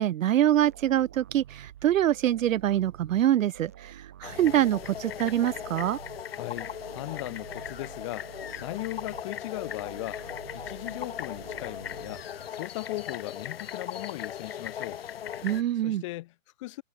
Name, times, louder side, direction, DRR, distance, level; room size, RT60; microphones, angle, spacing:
voice 1, 0.0-6.0 15.4-16.0, right 12 dB, 70° right, 0.5 m, -25 dB
sound 1, 0.5-12.8, right 11 dB, 10° right, 0.7 m, -49 dB
sound 2, 4.2-15.6, left 9 dB, 45° left, 1.4 m, -38 dB
voice 2, 6.3-10.3 10.5-15.0 15.8-16.8, left 18 dB, 20° left, 2.1 m, -38 dB
hypercardioid pair, 170°, 41 cm